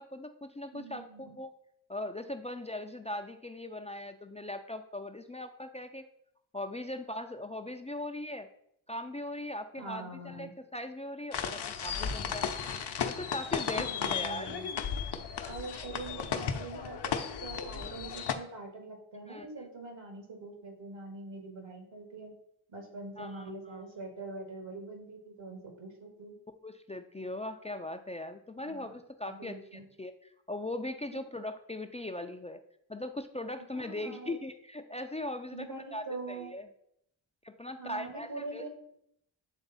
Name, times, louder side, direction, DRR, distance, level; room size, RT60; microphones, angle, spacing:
voice 1, 0.0-1.5 1.9-6.1 6.5-8.5 8.9-12.5 13.1-14.6 19.3-19.5 23.2-23.8 26.6-32.6 32.9-36.7 37.4-38.7, left 1 dB, 15° left, 6 dB, 0.4 m, -40 dB
voice 2, 0.7-1.4 9.8-10.5 13.8-14.7 15.4-22.3 22.7-26.4 28.6-28.9 29.3-29.8 33.7-34.4 35.5-36.5 37.8-38.7, right 3 dB, 70° right, 2 dB, 2.0 m, -44 dB
sound 1, 11.3-18.3, left 7 dB, 60° left, 0.8 m, -35 dB
8.1 x 3.5 x 4.1 m, 0.74 s
cardioid pair, 50°, 47 cm